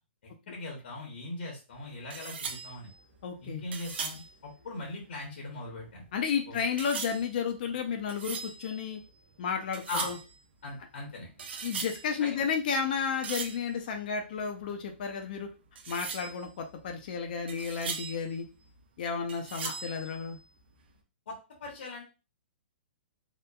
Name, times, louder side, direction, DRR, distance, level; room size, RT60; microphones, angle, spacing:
voice 1, 0.2-2.9 3.4-6.0 6.5-6.6 9.9-10.1 10.6-11.3 12.2-12.4 19.6-19.7 21.3-22.0, left 2 dB, 70° left, -1 dB, 0.9 m, -40 dB
sound 1, 1.7-1.8 2.1-5.2 5.6-6.3 6.8-9.4 9.7-10.4 10.8-12.4 12.7-14.7 15.0-15.1 15.3-15.5 15.8-19.0 19.3-20.8, right 5 dB, 65° right, 0.5 m, -40 dB
voice 2, 3.2-3.6 6.1-9.0 9.4-10.2 11.6-15.5 15.9-18.5 19.0-20.4, left 6 dB, 50° left, 4 dB, 0.4 m, -32 dB
2.8 x 2.1 x 2.2 m, 0.32 s
hypercardioid pair, 155°, 6 cm